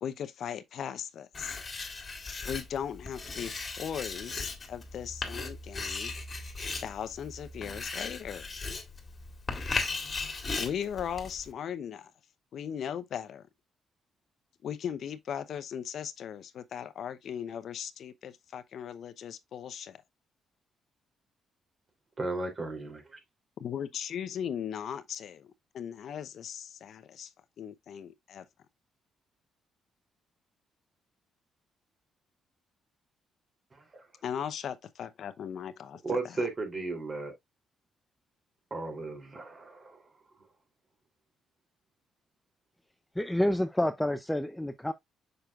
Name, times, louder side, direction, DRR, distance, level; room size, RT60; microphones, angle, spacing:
voice 1, 0.0-1.6 2.4-6.1 6.8-8.4 10.6-12.1 12.5-13.4 14.6-20.0 23.6-27.3 27.6-28.4 34.2-36.0, left 8 dB, 65° left, 0.7 m, -38 dB
Writing, 1.3-11.5, left 3 dB, 30° left, 1.8 m, -37 dB
voice 2, 22.2-23.2 33.7-34.1 36.0-37.3 38.7-40.0, right 3 dB, 35° right, 3.2 m, -35 dB
voice 3, 43.2-44.9, left 1 dB, 5° left, 0.5 m, -28 dB
6.7 x 5.9 x 2.4 m
cardioid pair, 90°, 0 cm